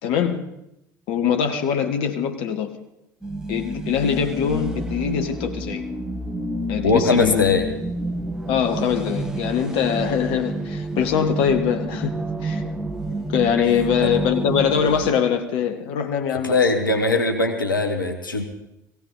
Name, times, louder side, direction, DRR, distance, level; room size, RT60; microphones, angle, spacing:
voice 1, 0.0-0.4 1.1-2.7 3.5-5.8 6.7-7.5 8.5-12.1 12.4-12.6 13.3-16.6, left 8 dB, 55° left, 7 dB, 1.3 m, -22 dB
sound 1, 3.2-15.1, right 1 dB, 5° right, 1.7 m, -29 dB
voice 2, 6.8-7.7 14.0-14.1 16.4-18.5, left 3 dB, 85° left, 5 dB, 1.2 m, -20 dB
17.0 x 17.0 x 3.8 m, 0.85 s
figure-of-eight pair, 65°, 11 cm